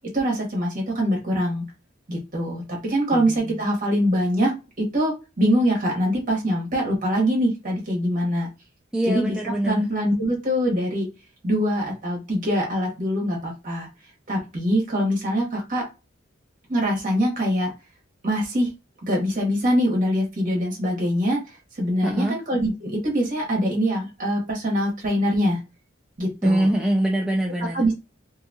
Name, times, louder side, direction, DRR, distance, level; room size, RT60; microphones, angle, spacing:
voice 1, 0.1-1.7 2.1-8.5 9.1-9.4 9.6-11.1 11.4-13.9 14.3-15.8 16.7-17.7 18.2-18.7 19.0-21.4 21.8-25.6 26.2-26.7 27.7-28.0, equal, 45° right, 1.1 m, -23 dB
voice 2, 3.1-3.7 8.9-9.8 22.0-22.4 26.4-27.8, right 1 dB, 5° right, 0.3 m, -24 dB
2.7 x 2.3 x 2.7 m
head